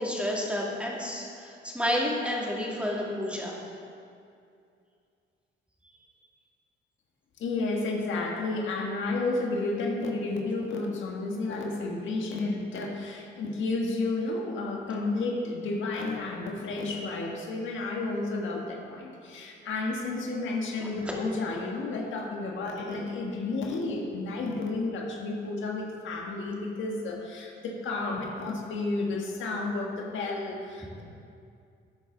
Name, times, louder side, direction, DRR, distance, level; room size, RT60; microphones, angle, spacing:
voice 1, 0.0-3.6 20.8-21.1, left 1 dB, 5° right, -3 dB, 2.3 m, -30 dB
voice 2, 7.4-31.0, left 3 dB, 75° left, 0 dB, 1.5 m, -31 dB
12.5 x 9.1 x 3.9 m, 2.4 s
cardioid pair, 90°, 20 cm